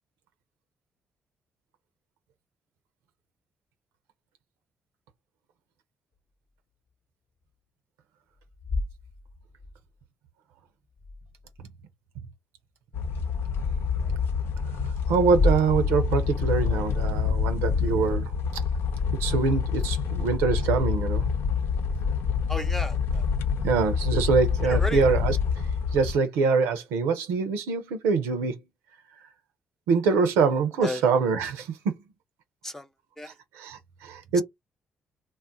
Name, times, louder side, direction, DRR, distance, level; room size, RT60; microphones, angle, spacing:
sound 1, 8.4-9.8 10.9-11.6 13.7-13.9 15.2-17.2, left 1 dB, 55° left, 0.9 m, -32 dB
sound 2, 12.9-26.1, left 6 dB, 75° left, 0.5 m, -27 dB
voice 1, 14.9-18.3 19.2-21.3 23.6-25.4 25.9-28.5 29.9-32.0 33.2-34.4, right 5 dB, 85° right, 0.5 m, -24 dB
voice 2, 22.5-23.2 24.7-25.0 30.8-31.0 32.6-32.9 33.2-33.3, left 1 dB, 10° left, 0.6 m, -33 dB
2.3 x 2.1 x 3.7 m
supercardioid pair, 55°, 4 cm